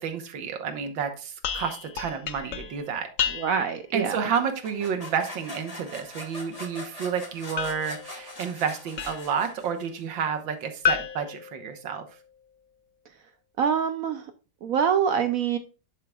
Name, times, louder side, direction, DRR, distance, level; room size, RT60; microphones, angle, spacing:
voice 1, 0.0-3.1 3.9-12.1, right 7 dB, 90° right, 6 dB, 1.8 m, -30 dB
sound 1, 1.4-3.8 7.6-9.4 10.8-12.3, left 8 dB, 60° left, 0.9 m, -32 dB
voice 2, 3.3-4.3 13.6-14.3 14.6-15.6, right 7 dB, 70° right, 8 dB, 0.8 m, -25 dB
sound 2, 4.3-10.0, left 1 dB, 20° left, 1.8 m, -42 dB
11.0 x 5.7 x 2.3 m, 0.34 s
omnidirectional pair, 2.0 m